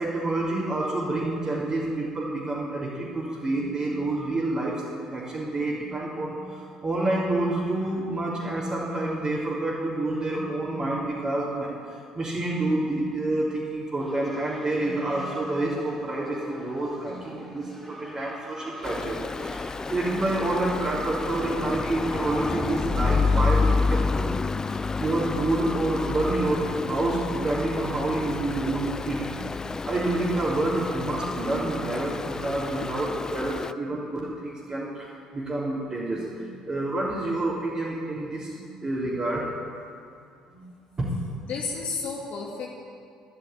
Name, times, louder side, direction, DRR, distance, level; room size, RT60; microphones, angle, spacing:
voice 1, 0.0-24.3 24.6-39.5 40.5-41.1, right 2 dB, 25° right, -8 dB, 3.9 m, -28 dB
sound 1, 14.0-24.3, equal, ahead, 3.3 m, -47 dB
Stream, 18.8-33.7, left 4 dB, 20° left, 0.4 m, -29 dB
voice 2, 41.4-42.7, left 4 dB, 50° left, -2 dB, 2.3 m, -32 dB
13.5 x 12.0 x 9.0 m, 2.3 s
figure-of-eight pair, 50°, 3 cm